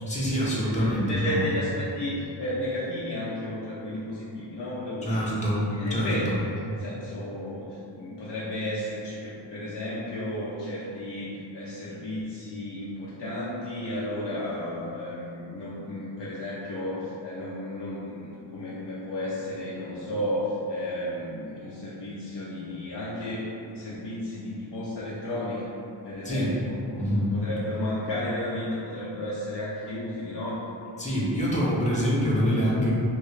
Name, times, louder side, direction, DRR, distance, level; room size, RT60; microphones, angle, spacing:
voice 1, 0.1-1.4 5.0-6.1 26.2-26.5 26.9-27.3 31.0-32.9, equal, 15° left, -6 dB, 0.7 m, -25 dB
voice 2, 0.6-5.3 5.7-6.4 6.7-25.7 26.0-30.7, left 1 dB, 65° left, -8 dB, 0.6 m, -33 dB
2.9 x 2.8 x 3.2 m, 2.7 s
wide cardioid pair, 125°, 45 cm